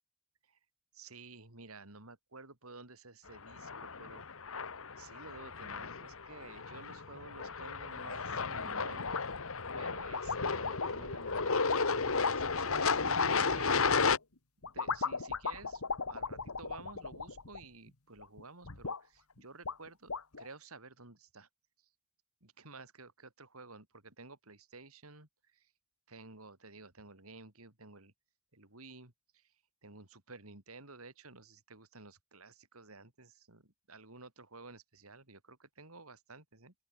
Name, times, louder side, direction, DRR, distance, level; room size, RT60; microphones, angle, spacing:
voice 1, 0.9-4.2 5.0-9.2 9.7-13.9 14.7-15.8 16.1-20.1 20.4-21.5 22.4-25.7 26.1-28.1 28.5-29.5 29.8-36.7, right 3 dB, 75° right, 4.3 m, -53 dB
sound 1, 3.5-14.2, left 4 dB, 65° left, 1.7 m, -34 dB
sound 2, 9.0-9.5 10.0-14.2 14.6-17.9 18.2-19.0 19.4-19.5 19.6-20.5, left 4 dB, 80° left, 1.9 m, -38 dB
open air
head